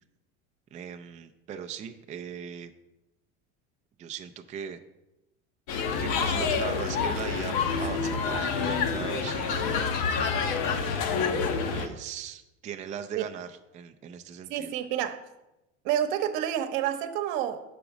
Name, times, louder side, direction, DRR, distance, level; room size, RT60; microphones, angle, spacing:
voice 1, 0.7-2.7 4.0-4.8 6.0-9.6 11.7-14.7, right 8 dB, 20° right, 0.3 m, -39 dB
sound 1, 5.7-11.9, left 5 dB, 65° left, 1.0 m, -28 dB
voice 2, 14.5-15.2 15.8-17.6, right 10 dB, 65° right, 0.9 m, -29 dB
7.0 x 5.1 x 4.8 m
supercardioid pair, 120°, 35 cm